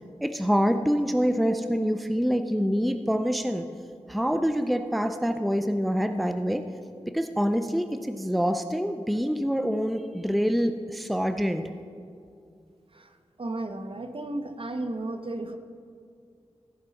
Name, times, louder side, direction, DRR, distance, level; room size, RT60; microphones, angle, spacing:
voice 1, 0.2-3.6 4.1-6.6 7.1-11.6, equal, ahead, 8 dB, 0.5 m, -26 dB
voice 2, 12.9-15.6, right 2 dB, 50° right, 7 dB, 0.8 m, -34 dB
15.0 x 5.4 x 4.1 m, 2.3 s
wide cardioid pair, 55°, 12 cm